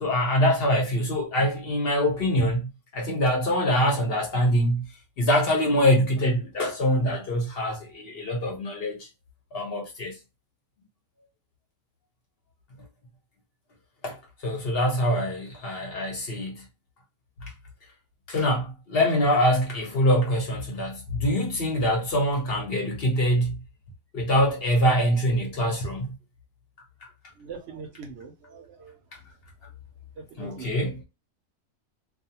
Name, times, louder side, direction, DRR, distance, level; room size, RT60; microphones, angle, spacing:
voice 1, 0.0-4.9 5.2-9.1 9.5-10.2 14.0-16.6 18.3-23.6 24.1-26.1 30.4-31.0, equal, 55° left, 0.9 m, -24 dB
voice 2, 27.4-29.0 30.2-30.8, right 5 dB, 60° right, 0.8 m, -42 dB
2.4 x 2.4 x 2.8 m
omnidirectional pair, 1.4 m